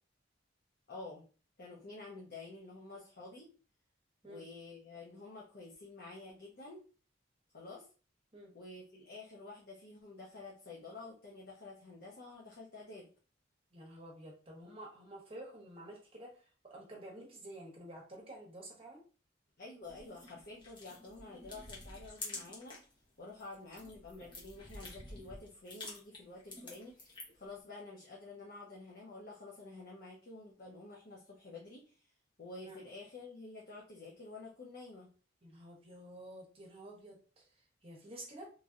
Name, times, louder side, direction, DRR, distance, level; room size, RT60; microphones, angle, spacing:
voice 1, 0.9-1.2 1.6-3.5 4.2-6.8 7.5-7.9 8.5-13.1 19.6-22.8 23.2-32.0 32.4-35.1, left 3 dB, 55° left, -3 dB, 0.7 m, -50 dB
voice 2, 13.7-19.0 32.6-32.8 35.4-38.5, right 1 dB, 30° right, -1 dB, 0.9 m, -50 dB
sound 1, 19.8-22.9 23.3-27.5, left 2 dB, 25° left, 0.9 m, -49 dB
3.1 x 2.6 x 2.4 m, 0.38 s
head